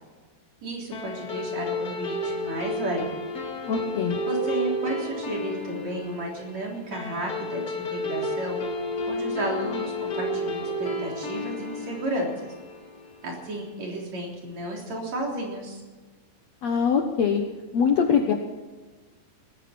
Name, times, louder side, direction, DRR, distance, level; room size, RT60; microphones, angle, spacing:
voice 1, 0.6-3.1 4.3-8.6 9.1-12.3 13.2-15.8, right 1 dB, 40° right, -1 dB, 4.5 m, -32 dB
sound 1, 0.9-13.7, left 1 dB, 30° left, 1.9 m, -32 dB
voice 2, 3.6-4.2 16.6-17.4 17.7-18.3, left 6 dB, 90° left, 2 dB, 1.5 m, -22 dB
19.5 x 15.0 x 4.4 m, 1.3 s
omnidirectional pair, 4.9 m